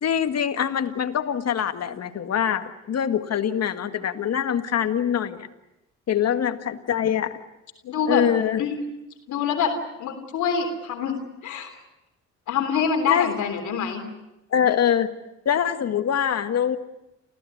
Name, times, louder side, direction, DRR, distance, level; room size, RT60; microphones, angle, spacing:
voice 1, 0.0-5.5 6.1-7.4 8.1-8.6 13.1-13.3 14.5-15.1 15.5-16.8, left 9 dB, 55° left, 9 dB, 1.8 m, -24 dB
voice 2, 7.8-8.2 8.6-8.8 9.3-11.7 12.5-14.0, left 6 dB, 75° left, 4 dB, 3.5 m, -26 dB
28.0 x 16.0 x 9.5 m, 0.97 s
cardioid pair, 90°, 30 cm